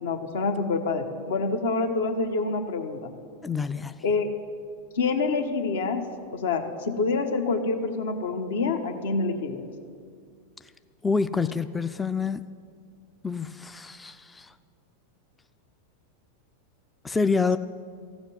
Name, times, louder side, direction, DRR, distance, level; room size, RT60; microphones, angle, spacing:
voice 1, 0.0-3.1 4.0-4.3 4.9-6.0 6.3-9.6, left 4 dB, 60° left, 7 dB, 1.1 m, -27 dB
voice 2, 3.4-4.0 11.0-12.4 13.2-14.5 17.0-17.6, left 4 dB, 10° left, 11 dB, 0.4 m, -27 dB
15.5 x 7.2 x 9.7 m, 2.2 s
figure-of-eight pair, 90°, 0 cm